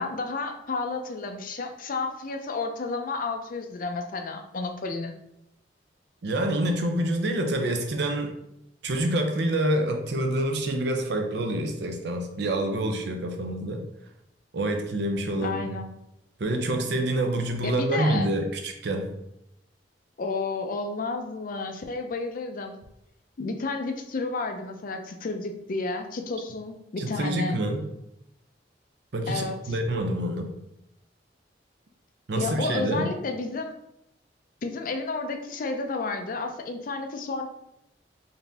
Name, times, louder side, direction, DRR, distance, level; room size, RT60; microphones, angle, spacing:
voice 1, 0.0-5.1 15.4-15.9 17.6-18.3 20.2-22.8 23.4-27.6 29.3-29.8 32.4-33.7 34.6-37.5, left 3 dB, 50° left, 6 dB, 0.4 m, -31 dB
voice 2, 6.2-8.3 8.8-13.8 14.5-15.7 16.4-19.1 27.0-27.8 29.1-30.5 32.3-33.1, right 1 dB, 65° right, 4 dB, 0.6 m, -27 dB
4.0 x 2.6 x 3.4 m, 0.81 s
head